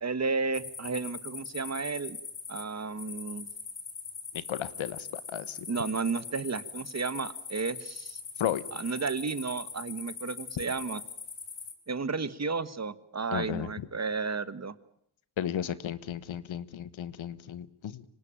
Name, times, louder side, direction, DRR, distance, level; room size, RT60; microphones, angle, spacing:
voice 1, 0.0-2.2 2.5-3.5 5.7-8.2 8.7-11.0 11.9-14.7, right 4 dB, 35° right, 15 dB, 1.5 m, -33 dB
sound 1, 0.5-11.7, left 5 dB, 60° left, 4.5 m, -42 dB
voice 2, 4.3-5.7 8.4-8.6 13.3-13.9 15.4-18.0, left 10 dB, 85° left, 16 dB, 1.4 m, -34 dB
25.5 x 19.0 x 8.9 m, 0.70 s
cardioid pair, 80°, 46 cm